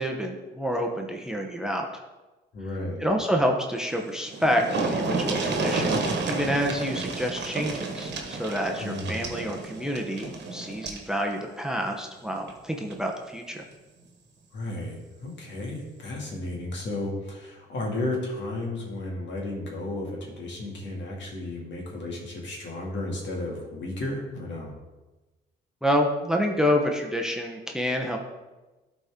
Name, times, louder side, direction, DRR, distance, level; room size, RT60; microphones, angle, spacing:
voice 1, 0.0-1.9 3.0-13.6 25.8-28.2, equal, 5° right, 2 dB, 0.8 m, -28 dB
voice 2, 2.5-3.1 8.8-9.3 14.5-24.7, left 2 dB, 65° left, -1 dB, 2.1 m, -33 dB
sound 1, 4.0-4.1 4.3-11.1 12.4-12.5 12.9-13.0, right 3 dB, 60° right, 1.3 m, -30 dB
12.0 x 4.3 x 3.7 m, 1.1 s
cardioid pair, 90°, 20 cm